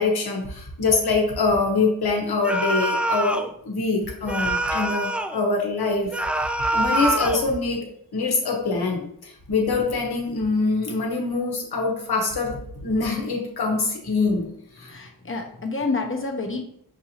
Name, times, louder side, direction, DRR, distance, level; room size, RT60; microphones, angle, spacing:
voice 1, 0.0-7.8 8.1-14.5 14.8-14.9, left 3 dB, 80° left, 0 dB, 1.1 m, -24 dB
sound 1, 2.4-3.5 4.3-5.4 6.1-7.5, right 1 dB, 5° right, 0.4 m, -25 dB
voice 2, 14.8-16.6, left 3 dB, 35° left, 3 dB, 0.9 m, -28 dB
6.0 x 2.7 x 2.9 m, 0.69 s
cardioid pair, 40°, 37 cm